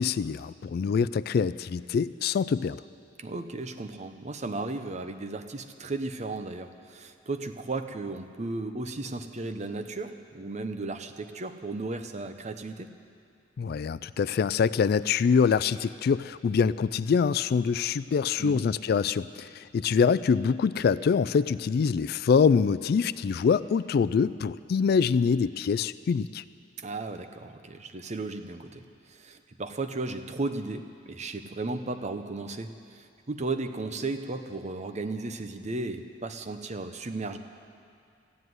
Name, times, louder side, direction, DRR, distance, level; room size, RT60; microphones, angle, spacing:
voice 1, 0.0-2.8 13.6-26.4, left 6 dB, 55° left, 17 dB, 0.3 m, -25 dB
voice 2, 3.2-12.9 18.4-18.7 26.8-28.8 29.1-37.4, right 3 dB, 40° right, 8 dB, 0.8 m, -35 dB
14.0 x 10.0 x 9.4 m, 2.5 s
head